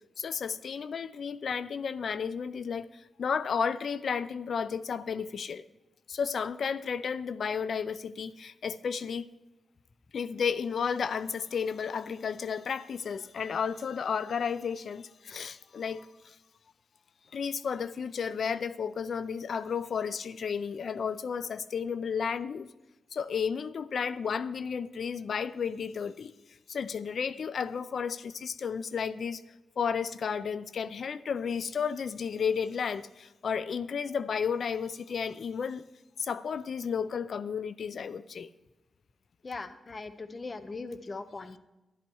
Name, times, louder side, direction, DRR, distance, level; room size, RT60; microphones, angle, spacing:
voice 1, 0.2-5.6 6.1-9.3 10.1-16.4 17.3-22.7 23.1-26.3 26.7-29.4 29.8-35.8 36.2-38.5, left 6 dB, 65° left, 0.5 m, -33 dB
voice 2, 39.4-41.6, left 3 dB, 40° left, 0.8 m, -40 dB
12.5 x 12.0 x 4.6 m
cardioid pair, 75°, 0 cm